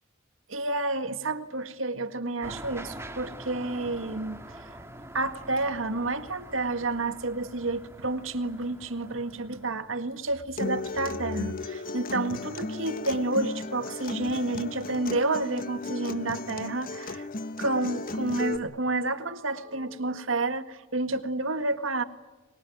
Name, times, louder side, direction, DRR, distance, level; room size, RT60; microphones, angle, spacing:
voice 1, 0.5-4.7 5.1-17.3 17.6-22.0, right 2 dB, 85° right, 10 dB, 1.9 m, -30 dB
sound 1, 2.4-10.3, right 1 dB, 15° right, 2.1 m, -45 dB
Acoustic guitar, 10.6-18.6, left 2 dB, 45° left, 1.3 m, -35 dB
25.0 x 22.0 x 9.4 m, 1.2 s
head